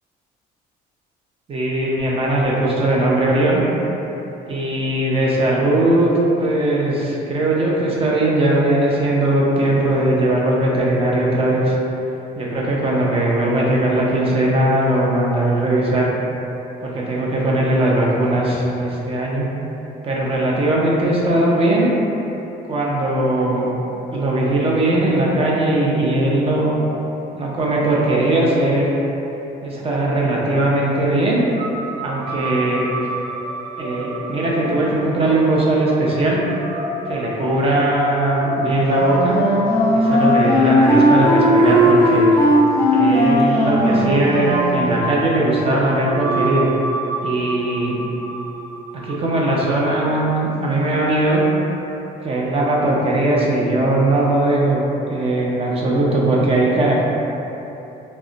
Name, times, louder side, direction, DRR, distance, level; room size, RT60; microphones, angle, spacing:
voice 1, 1.5-3.6 4.5-11.7 12.3-16.1 16.8-19.5 20.0-21.9 22.6-23.7 24.1-26.7 27.3-29.1 29.6-31.4 32.0-32.8 33.8-36.4 37.1-39.4 39.9-42.2 42.9-46.7 47.2-48.0 49.0-51.4 52.2-57.1, right 1 dB, 35° right, -4 dB, 0.6 m, -19 dB
sound 1, 31.5-49.7, right 1 dB, 75° right, 0.6 m, -29 dB
Wind instrument woodwind instrument, 39.0-44.9, equal, 15° left, 0.5 m, -16 dB
2.3 x 2.1 x 3.8 m, 3.0 s
cardioid pair, 110°, 17 cm